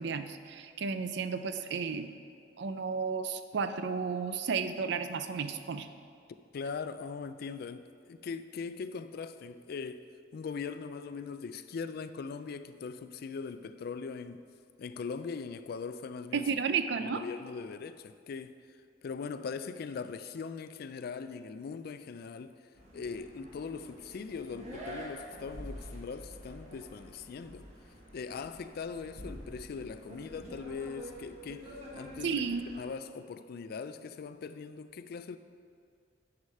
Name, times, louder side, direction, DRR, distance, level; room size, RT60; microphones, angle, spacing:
voice 1, 0.0-2.2 2.6-5.9 16.3-17.2 32.2-32.6, right 5 dB, 65° right, 0.5 m, -33 dB
voice 2, 6.5-10.1 10.3-14.4 14.8-16.4 17.0-18.5 19.0-22.5 22.9-27.7 28.1-32.4 32.8-35.4, left 5 dB, 55° left, 0.3 m, -40 dB
sound 1, 22.7-32.8, right 1 dB, 35° right, 1.4 m, -47 dB
9.7 x 4.9 x 5.5 m
head